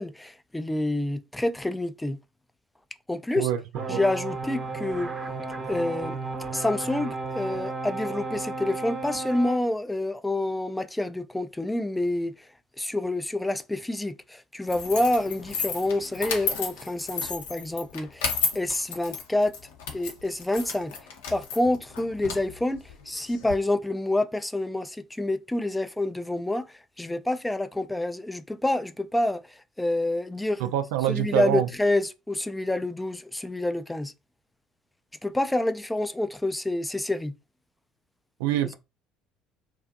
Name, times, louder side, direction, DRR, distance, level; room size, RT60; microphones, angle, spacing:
voice 1, 0.0-2.2 3.1-3.5 3.9-5.1 5.7-6.2 6.5-12.5 12.8-19.5 19.9-21.0 21.3-30.7 31.1-34.1 35.2-37.3, left 1 dB, 10° left, 0.3 m, -28 dB
voice 2, 3.4-4.0 30.6-31.7 38.4-38.7, right 12 dB, 70° right, 0.3 m, -26 dB
sound 1, 3.7-9.6, right 3 dB, 30° right, 0.6 m, -33 dB
sound 2, 14.7-23.5, left 6 dB, 75° left, 0.6 m, -33 dB
2.4 x 2.3 x 2.5 m
figure-of-eight pair, 60°, 0 cm